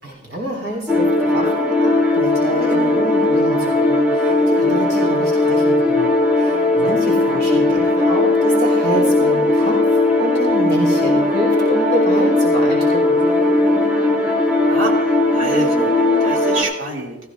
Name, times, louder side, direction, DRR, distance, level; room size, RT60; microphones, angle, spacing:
voice 1, 0.0-6.1 6.4-9.8 10.2-13.2, right 1 dB, 50° right, -2 dB, 3.4 m, -27 dB
sound 1, 0.9-16.6, left 2 dB, 10° right, 1.9 m, -17 dB
voice 2, 14.6-15.9 16.2-17.2, right 1 dB, 80° right, -2 dB, 2.5 m, -26 dB
17.0 x 14.0 x 2.5 m, 0.98 s
head